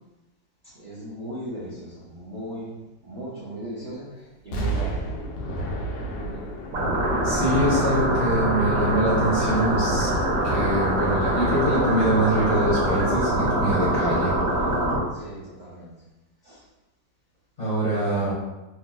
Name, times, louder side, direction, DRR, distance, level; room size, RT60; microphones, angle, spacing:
voice 1, 0.6-2.7 3.0-5.1 6.1-6.5 7.7-8.3 15.1-15.9 16.4-16.6 17.9-18.3, right 1 dB, 80° right, -10 dB, 0.4 m, -38 dB
Explosion, 4.5-8.5 8.9-9.0, right 2 dB, 75° left, 1.3 m, -32 dB
sound 1, 6.7-15.0, right 1 dB, 60° right, 1.0 m, -24 dB
voice 2, 7.2-14.7 17.6-18.3, right 1 dB, 25° left, -10 dB, 1.0 m, -24 dB
3.4 x 2.8 x 2.2 m, 1.0 s
omnidirectional pair, 2.0 m